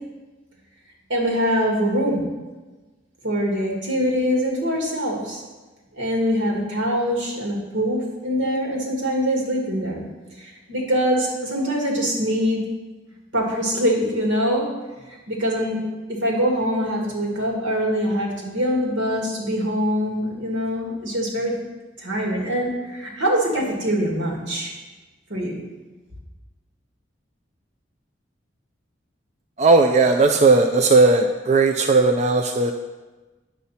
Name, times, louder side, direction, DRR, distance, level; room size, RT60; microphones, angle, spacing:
voice 1, 1.1-2.2 3.2-5.4 5.9-10.0 10.4-12.6 13.3-14.7 15.3-15.8 16.1-21.5 22.0-24.7 25.3-25.7, equal, 85° right, -2 dB, 2.2 m, -23 dB
voice 2, 29.6-32.7, right 3 dB, 35° right, 4 dB, 0.4 m, -16 dB
9.2 x 7.0 x 4.3 m, 1.2 s
head